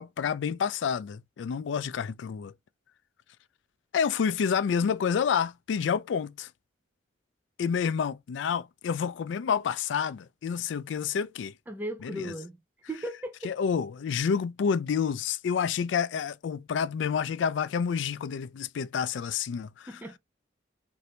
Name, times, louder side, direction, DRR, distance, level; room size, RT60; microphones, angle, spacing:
voice 1, 0.0-2.5 3.9-6.5 7.6-11.5 12.0-12.3 13.4-20.0, left 7 dB, 75° left, 0.3 m, -29 dB
voice 2, 11.7-12.6 12.9-13.5 19.9-20.2, right 1 dB, 10° right, 0.4 m, -36 dB
3.1 x 2.6 x 2.8 m
head